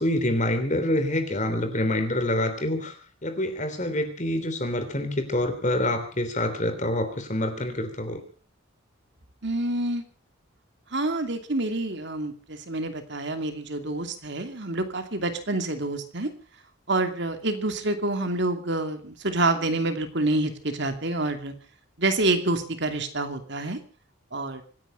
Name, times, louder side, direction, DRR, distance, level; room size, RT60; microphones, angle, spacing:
voice 1, 0.0-8.2, left 1 dB, 35° left, 8 dB, 3.3 m, -26 dB
voice 2, 9.4-10.0 10.9-16.3 16.9-21.5 22.0-23.8 24.3-24.6, right 2 dB, 55° right, 7 dB, 2.6 m, -27 dB
25.5 x 10.0 x 5.6 m, 0.42 s
head